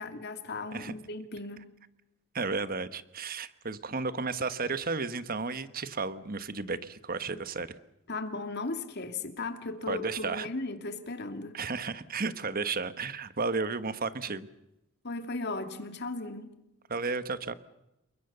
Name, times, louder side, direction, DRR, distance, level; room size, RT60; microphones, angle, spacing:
voice 1, 0.0-1.7 8.1-11.6 15.0-16.6, left 3 dB, 55° left, 2.6 m, -36 dB
voice 2, 2.3-7.8 9.9-10.5 11.5-14.5 16.9-17.5, right 4 dB, 45° right, 1.3 m, -33 dB
28.5 x 23.0 x 6.9 m
head